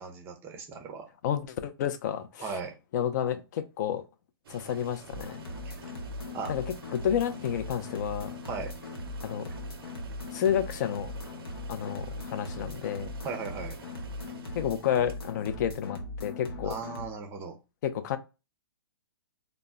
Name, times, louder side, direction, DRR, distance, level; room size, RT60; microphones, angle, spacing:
voice 1, 0.0-1.1 2.4-2.7 5.7-5.8 6.3-6.5 8.4-8.7 13.2-13.8 16.6-17.6, right 5 dB, 20° right, 0.5 m, -37 dB
voice 2, 1.2-2.6 2.9-4.0 4.5-5.4 6.5-6.6 6.9-8.3 9.2-9.5 10.3-11.1 11.7-13.1 14.6-16.8 17.8-18.2, left 9 dB, 45° left, 0.4 m, -30 dB
sound 1, 4.4-15.6, right 5 dB, 70° right, 0.4 m, -50 dB
sound 2, 5.1-17.1, left 2 dB, 80° left, 0.8 m, -40 dB
2.1 x 2.0 x 3.6 m
hypercardioid pair, 135°, 13 cm